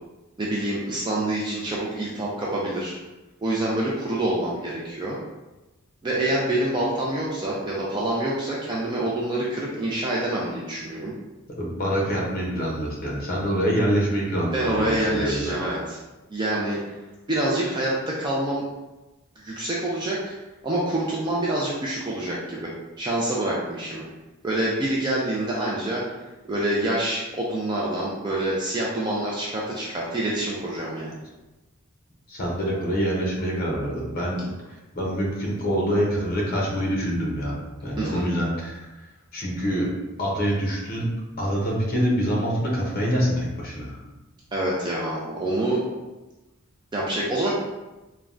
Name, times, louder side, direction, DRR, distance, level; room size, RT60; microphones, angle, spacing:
voice 1, 0.4-3.0 3.4-5.2 6.0-11.1 14.5-16.0 16.3-16.8 17.3-18.6 19.4-20.4 20.6-22.7 23.0-24.0 24.4-26.0 26.5-31.2 38.0-38.3 44.5-45.8 46.9-47.5, right 1 dB, 20° right, -5 dB, 0.3 m, -26 dB
voice 2, 11.5-15.5 32.3-38.9 39.3-39.9 40.2-41.1 41.4-44.0, equal, 40° left, -2 dB, 0.7 m, -25 dB
3.3 x 2.2 x 2.4 m, 1.1 s
head